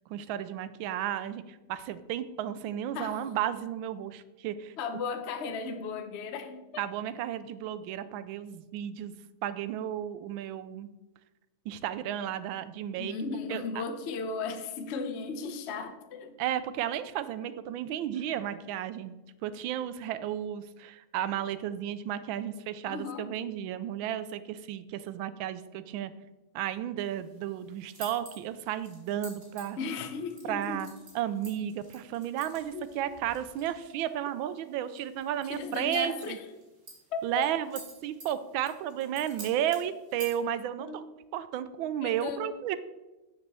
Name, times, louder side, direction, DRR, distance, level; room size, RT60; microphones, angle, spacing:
voice 1, 0.1-4.7 6.8-9.1 9.4-10.9 11.7-13.2 13.5-13.8 16.4-19.1 19.4-26.1 26.5-29.8 30.5-36.4 37.2-41.0 41.3-42.8, right 11 dB, 75° right, 13 dB, 1.3 m, -33 dB
voice 2, 4.8-6.8 13.0-16.4 22.9-23.3 29.8-30.8 32.7-32.9 35.4-36.4 37.1-37.3 40.8-41.0 42.0-42.5, left 4 dB, 65° left, 8 dB, 0.6 m, -36 dB
sound 1, 27.0-40.4, right 2 dB, 45° right, 2.5 m, -51 dB
7.1 x 5.4 x 6.7 m, 1.1 s
omnidirectional pair, 2.3 m